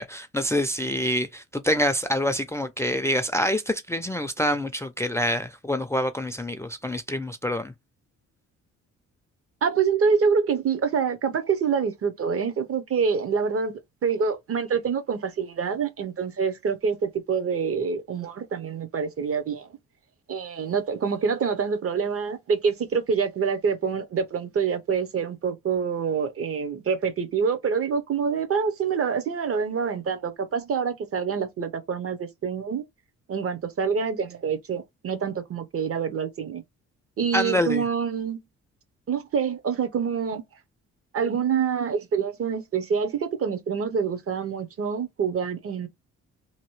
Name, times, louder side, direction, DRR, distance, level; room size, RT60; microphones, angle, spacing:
voice 1, 0.0-7.7 37.3-37.8, equal, 10° left, 0.4 m, -26 dB
voice 2, 9.6-19.8 20.3-32.8 33.3-36.6 37.2-38.4 39.1-40.4 41.1-45.9, right 6 dB, 50° right, 0.8 m, -26 dB
2.9 x 2.7 x 3.1 m
cardioid pair, 90°, 30 cm